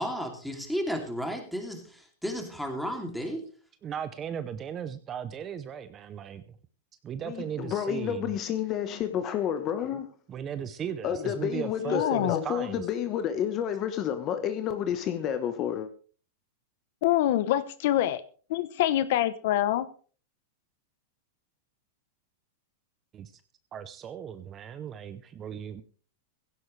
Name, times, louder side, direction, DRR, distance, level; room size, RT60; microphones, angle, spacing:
voice 1, 0.0-3.4, equal, ahead, 2.8 m, -33 dB
voice 2, 3.8-6.6 7.0-8.3 10.3-12.9 23.1-23.4 23.7-25.8, right 8 dB, 20° right, 0.6 m, -37 dB
voice 3, 7.2-10.1 11.0-15.9, left 9 dB, 25° left, 1.1 m, -30 dB
voice 4, 11.9-12.4 17.0-18.2 18.5-19.9, left 13 dB, 55° left, 0.9 m, -25 dB
16.5 x 15.5 x 3.3 m
supercardioid pair, 165°, 0 cm